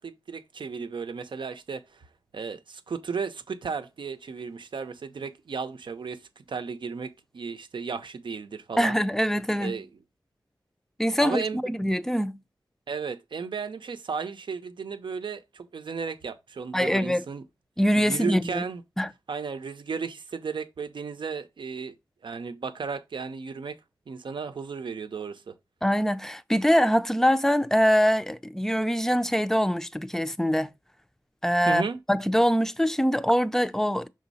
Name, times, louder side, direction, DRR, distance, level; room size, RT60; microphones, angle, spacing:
voice 1, 0.0-2.0 2.3-8.9 9.6-9.9 11.2-11.7 12.9-17.4 18.0-18.8 19.3-21.9 22.2-23.8 24.1-25.5 31.7-32.0, right 5 dB, 80° right, 0.7 m, -34 dB
voice 2, 8.8-9.8 11.0-12.4 16.7-17.2 17.8-18.6 19.0-19.1 25.8-30.7 31.4-31.8 32.1-34.1, equal, 5° left, 0.4 m, -23 dB
6.3 x 3.9 x 4.1 m
wide cardioid pair, 85°, 8 cm